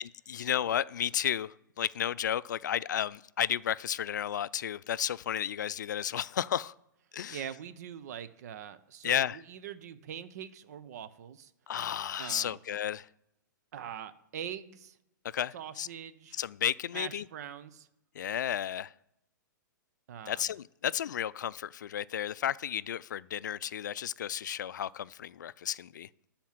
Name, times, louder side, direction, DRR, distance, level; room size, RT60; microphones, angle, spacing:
voice 1, 0.0-6.7 7.1-7.4 9.0-9.4 11.7-13.1 15.3-15.9 16.4-17.2 18.2-18.9 20.3-26.1, left 10 dB, 65° left, 0.4 m, -33 dB
voice 2, 7.3-11.5 12.2-12.6 13.7-15.0 15.5-16.4 16.9-17.9 20.1-20.5, right 9 dB, 55° right, 0.8 m, -43 dB
13.0 x 4.4 x 7.4 m
figure-of-eight pair, 115°, 11 cm